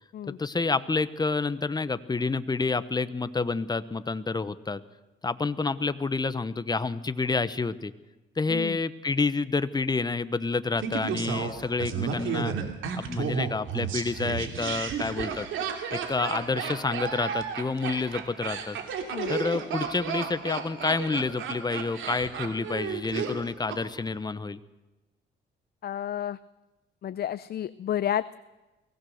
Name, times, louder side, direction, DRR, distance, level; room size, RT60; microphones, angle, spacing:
voice 1, 0.4-4.8 5.2-7.9 8.4-12.5 13.0-15.5 15.9-18.8 19.3-24.6, left 3 dB, 20° left, 13 dB, 1.0 m, -29 dB
Laughter, 10.8-23.8 24.1-24.2, right 6 dB, 80° right, 2.9 m, -32 dB
voice 2, 25.8-26.4 27.0-28.3, left 10 dB, 55° left, 15 dB, 0.6 m, -31 dB
23.5 x 17.0 x 6.6 m, 1.1 s
cardioid pair, 90°, 20 cm